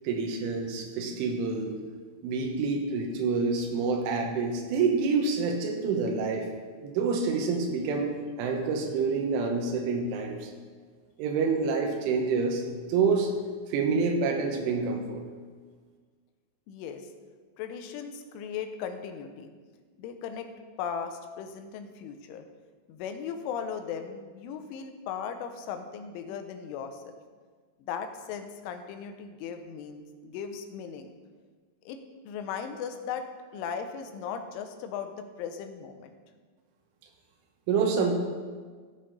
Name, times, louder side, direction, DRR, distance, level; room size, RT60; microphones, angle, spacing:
voice 1, 0.1-1.7 2.2-6.5 6.8-8.1 8.4-10.5 11.2-12.6 12.9-13.3 13.7-15.2 37.7-38.1, right 4 dB, 85° right, 3 dB, 3.6 m, -27 dB
voice 2, 16.7-17.1 17.6-19.5 20.0-20.5 20.8-22.5 22.9-27.2 27.8-31.1 31.9-36.1, left 7 dB, 85° left, 7 dB, 3.2 m, -37 dB
15.5 x 6.5 x 4.0 m, 1.5 s
omnidirectional pair, 5.5 m